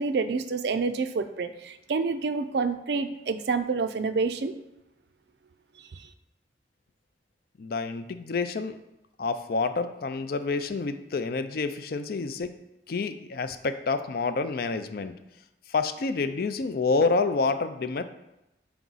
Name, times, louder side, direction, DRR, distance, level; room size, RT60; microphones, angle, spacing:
voice 1, 0.0-4.5, right 4 dB, 65° right, 9 dB, 0.4 m, -28 dB
voice 2, 7.6-8.8 9.2-12.5 12.9-15.1 15.7-18.0, left 4 dB, 55° left, 10 dB, 0.4 m, -28 dB
6.0 x 4.6 x 4.0 m, 0.92 s
head